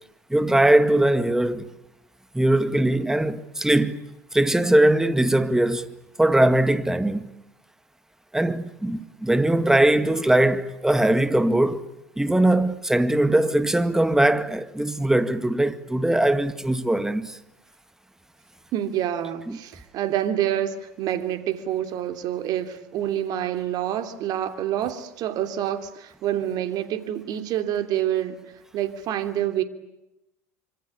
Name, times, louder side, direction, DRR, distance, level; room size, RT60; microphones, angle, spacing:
voice 1, 0.3-1.7 2.3-4.0 4.3-7.3 8.3-17.4 19.5-19.6, right 1 dB, 5° right, 2.0 m, -21 dB
voice 2, 18.7-28.4 28.7-29.6, right 11 dB, 50° right, 2.9 m, -27 dB
26.0 x 25.5 x 8.6 m
hypercardioid pair, 85°, 8 cm